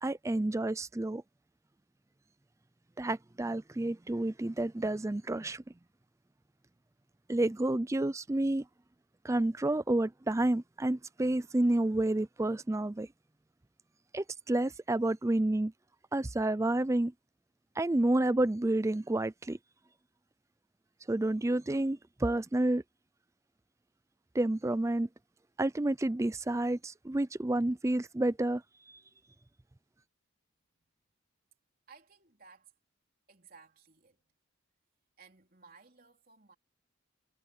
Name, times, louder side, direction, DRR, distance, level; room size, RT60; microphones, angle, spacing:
voice 1, 0.0-1.2 3.0-5.6 7.3-8.7 9.2-13.1 14.1-15.7 16.1-17.1 17.8-19.6 21.1-22.8 24.3-25.1 25.6-28.6, right 1 dB, 15° right, 0.4 m, -30 dB
voice 2, 31.9-32.7 33.3-34.2 35.2-36.5, right 5 dB, 45° right, 3.7 m, -58 dB
head